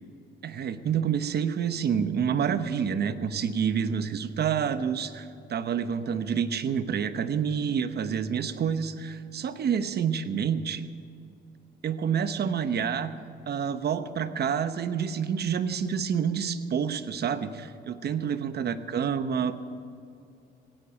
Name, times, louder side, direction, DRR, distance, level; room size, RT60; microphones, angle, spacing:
voice 1, 0.4-10.8 11.8-13.1 13.5-19.5, right 7 dB, 55° right, 11 dB, 1.0 m, -28 dB
16.5 x 9.8 x 8.8 m, 2.6 s
cardioid pair, 90°, 20 cm